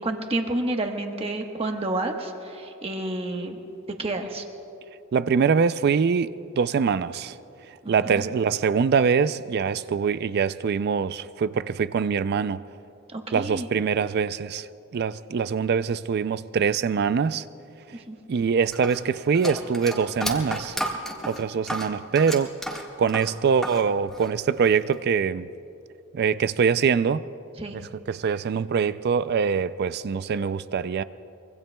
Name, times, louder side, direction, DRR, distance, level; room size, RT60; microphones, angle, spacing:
voice 1, 0.0-3.6 4.0-4.4 7.8-8.2 13.1-13.7 17.9-18.2 27.6-27.8, right 2 dB, 30° right, 1.2 m, -30 dB
voice 2, 5.1-7.3 7.9-12.6 13.3-14.7 14.9-17.4 18.3-20.8 21.3-25.5 26.1-27.2 27.7-31.0, right 6 dB, 50° right, 0.4 m, -24 dB
sound 1, 18.7-23.8 24.1-24.9, equal, ahead, 1.6 m, -32 dB
24.5 x 23.5 x 2.3 m
head